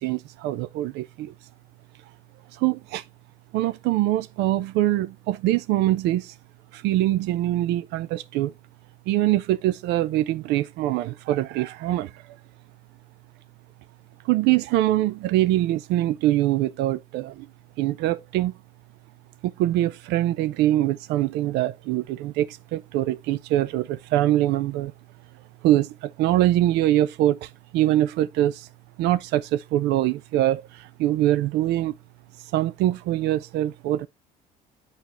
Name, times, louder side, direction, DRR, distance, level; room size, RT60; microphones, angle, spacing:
voice 1, 0.0-1.3 2.5-3.0 3.5-6.3 6.7-8.5 9.1-12.1 14.2-17.5 17.8-18.5 19.4-24.9 25.6-28.7 29.0-31.9 32.5-34.1, right 14 dB, 90° right, 0.5 m, -23 dB
8.3 x 4.6 x 3.0 m
cardioid pair, 110°, 17 cm